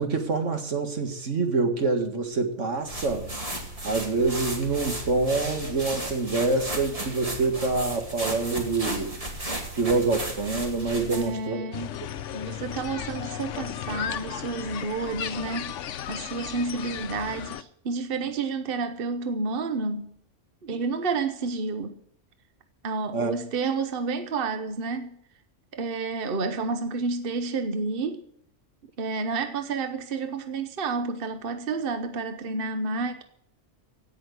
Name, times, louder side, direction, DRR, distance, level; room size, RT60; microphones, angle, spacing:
voice 1, 0.0-3.3 3.6-9.2 9.8-11.6 23.1-23.3, right 3 dB, 80° right, 2.1 m, -26 dB
sound 1, 2.8-11.4, right 1 dB, 30° right, 2.5 m, -34 dB
voice 2, 11.1-12.0 12.3-15.8 16.1-20.1 20.6-22.0 22.8-25.2 25.7-28.2 29.0-33.2, right 4 dB, 50° right, 1.1 m, -30 dB
sound 2, 11.7-17.6, left 10 dB, 80° left, 1.0 m, -35 dB
16.5 x 6.3 x 9.2 m
omnidirectional pair, 1.2 m